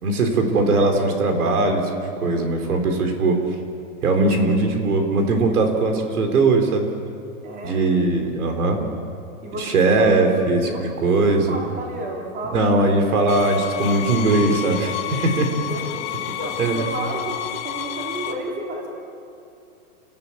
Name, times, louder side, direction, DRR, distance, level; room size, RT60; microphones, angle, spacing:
voice 1, 0.0-3.3 4.0-6.9 7.6-8.8 9.6-10.7 11.0-11.6 12.5-15.5 16.6-16.8, right 3 dB, 80° right, 4 dB, 4.4 m, -20 dB
voice 2, 7.4-7.9 9.4-10.2 10.6-10.8 11.2-12.6 15.5-15.9 16.2-18.9, right 2 dB, 20° right, -1 dB, 3.7 m, -32 dB
sound 1, 13.3-18.3, left 12 dB, 30° left, 1.4 m, -30 dB
29.0 x 18.5 x 7.3 m, 2.5 s
hypercardioid pair, 160°, 44 cm